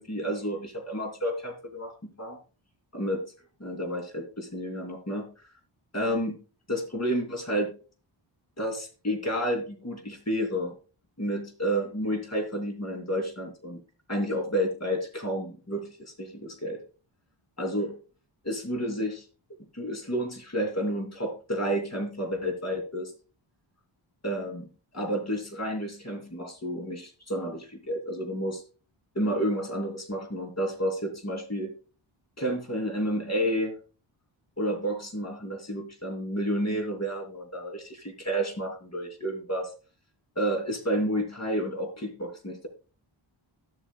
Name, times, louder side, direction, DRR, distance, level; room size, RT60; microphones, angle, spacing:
voice 1, 0.0-2.4 2.9-3.2 3.6-5.2 5.9-6.4 6.7-7.7 8.6-10.7 11.2-13.8 14.1-16.8 17.6-18.0 18.4-19.3 19.7-23.1 24.2-24.7 24.9-28.6 29.1-31.7 32.4-33.7 34.6-39.7 40.3-42.7, equal, 30° left, 4 dB, 3.1 m, -30 dB
12.5 x 7.8 x 2.3 m, 0.35 s
wide cardioid pair, 85°, 48 cm